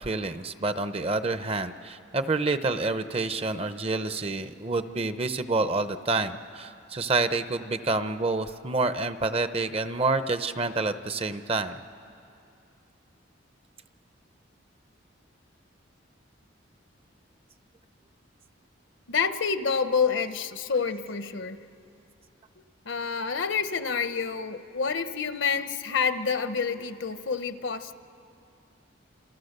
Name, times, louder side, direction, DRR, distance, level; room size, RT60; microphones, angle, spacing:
voice 1, 0.0-11.8, right 3 dB, 30° right, 11 dB, 0.7 m, -28 dB
voice 2, 19.1-21.6 22.8-27.9, left 5 dB, 70° left, 11 dB, 1.0 m, -28 dB
28.0 x 28.0 x 6.7 m, 2.5 s
head